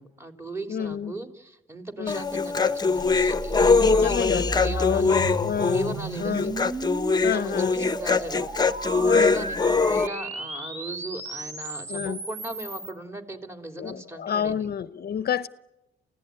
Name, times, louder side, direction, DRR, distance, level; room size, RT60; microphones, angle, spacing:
voice 1, 0.0-5.2 5.7-6.5 7.1-8.4 8.9-14.6, right 2 dB, 15° right, 3.3 m, -38 dB
voice 2, 0.7-1.1 2.0-2.2 3.8-6.6 7.2-7.7 9.1-9.5 11.9-12.2 13.8-15.5, left 8 dB, 50° left, 0.8 m, -29 dB
Human voice, 2.1-10.1, left 4 dB, 20° left, 1.0 m, -22 dB
sound 1, 3.0-12.9, right 1 dB, 35° right, 6.2 m, -34 dB
29.5 x 16.5 x 9.5 m
cardioid pair, 90°, 20 cm